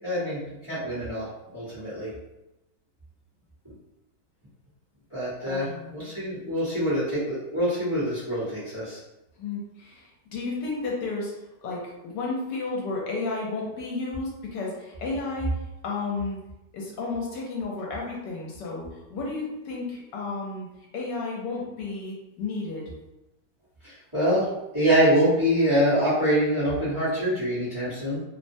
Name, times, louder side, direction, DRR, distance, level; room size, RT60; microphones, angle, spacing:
voice 1, 0.0-1.3 1.5-2.1 5.1-9.0 23.8-24.5 24.7-28.2, equal, 20° right, -11 dB, 0.9 m, -25 dB
voice 2, 5.5-6.3 9.4-11.3 11.6-15.6 15.8-16.4 16.7-20.7 20.9-22.9, left 3 dB, 75° left, -2 dB, 1.2 m, -32 dB
3.2 x 2.1 x 2.6 m, 0.95 s
omnidirectional pair, 1.9 m